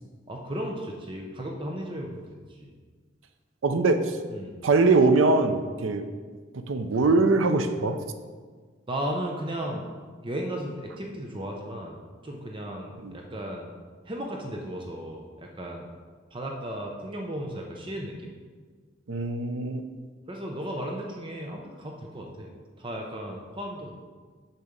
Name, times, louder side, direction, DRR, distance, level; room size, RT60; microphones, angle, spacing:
voice 1, 0.3-2.7 3.7-3.8 4.3-4.5 8.9-9.9 10.2-12.0 12.2-13.7 14.0-15.9 16.3-18.3 20.3-22.5 22.8-23.9, right 1 dB, 25° right, 0 dB, 0.7 m, -35 dB
voice 2, 3.6-4.1 4.6-6.0 6.7-8.0 13.0-13.1 19.1-19.9, right 3 dB, 75° right, 8 dB, 0.6 m, -22 dB
6.8 x 5.9 x 5.1 m, 1.5 s
head